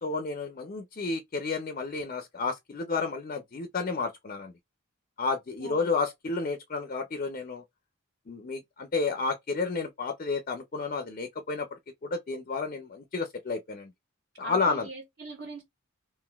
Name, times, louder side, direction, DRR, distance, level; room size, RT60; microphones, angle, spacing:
voice 1, 0.0-4.5 5.2-7.6 8.3-11.7 12.0-13.9 14.4-14.9, left 4 dB, 40° left, 0.4 m, -31 dB
voice 2, 14.4-15.6, right 3 dB, 55° right, 1.1 m, -41 dB
3.7 x 2.5 x 2.3 m
head